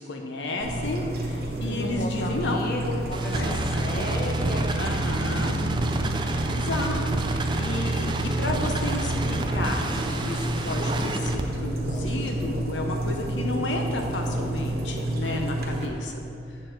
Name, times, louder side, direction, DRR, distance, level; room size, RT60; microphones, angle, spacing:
voice 1, 0.0-2.6 3.3-3.8 4.8-5.6 6.2-8.1 8.4-16.6, left 2 dB, 85° left, 2 dB, 0.8 m, -32 dB
sound 1, 0.6-15.9, right 1 dB, 55° right, 1.1 m, -30 dB
sound 2, 0.8-16.1, equal, 40° left, 1.2 m, -41 dB
voice 2, 1.7-6.3, left 1 dB, 55° left, 1 dB, 0.8 m, -34 dB
sound 3, 3.1-11.4, right 2 dB, 25° right, 0.4 m, -29 dB
7.4 x 7.0 x 4.5 m, 2.4 s
head